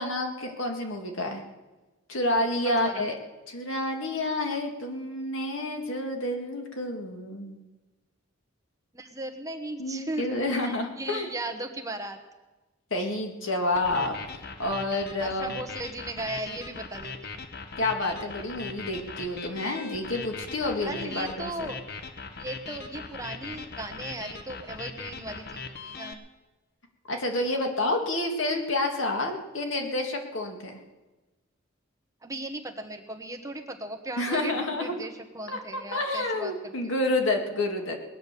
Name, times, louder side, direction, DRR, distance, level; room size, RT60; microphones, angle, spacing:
voice 1, 0.0-1.4 2.1-3.2 3.5-7.7 9.8-11.3 12.9-14.2 14.6-15.6 17.8-21.7 27.1-30.8 34.2-34.9 35.5-38.0, left 2 dB, 75° left, 3 dB, 2.2 m, -29 dB
voice 2, 2.6-3.0 8.9-12.2 15.2-17.4 20.8-21.8 22.4-26.2 32.2-36.9, right 2 dB, 15° right, 5 dB, 1.2 m, -37 dB
sound 1, 13.8-26.1, left 4 dB, 55° left, 1.0 m, -40 dB
20.0 x 9.1 x 6.8 m, 1.2 s
head